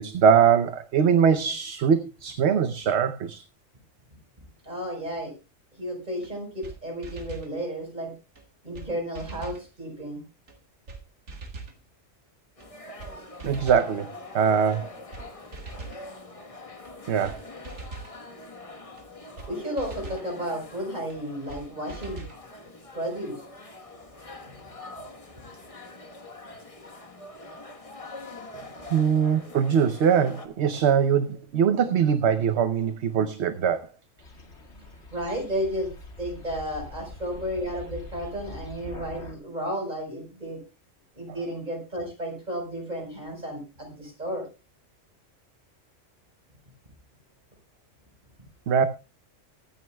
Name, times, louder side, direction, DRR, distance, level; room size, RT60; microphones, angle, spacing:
voice 1, 0.0-3.4 13.4-14.9 17.1-17.4 28.9-33.9 48.7-48.9, right 7 dB, 60° right, 1.0 m, -22 dB
voice 2, 4.6-5.3 5.8-8.1 8.6-10.2 19.5-22.2 22.9-23.4 34.7-35.9 36.2-40.6 41.2-44.5, equal, 35° right, 4.7 m, -33 dB
sound 1, 6.2-6.3 6.6-6.8 7.0-7.5 8.4-8.5 8.7-8.9 9.1-9.6 10.5-10.6 10.9-11.0 11.3-11.8 12.6-12.7 13.0-13.1 13.4-13.9 14.7-14.8 15.1-15.3 15.5-16.0 16.8-16.9 17.2-17.4 17.6-18.1 19.0-19.1 19.4-19.5 19.8-20.3 21.1-21.2 21.5-21.6 21.9-22.4, right 3 dB, 85° right, 2.2 m, -40 dB
sound 2, 12.6-30.5, left 2 dB, 30° left, 1.3 m, -44 dB
sound 3, 34.2-39.3, left 2 dB, 60° left, 2.4 m, -43 dB
22.5 x 9.4 x 2.2 m
omnidirectional pair, 1.3 m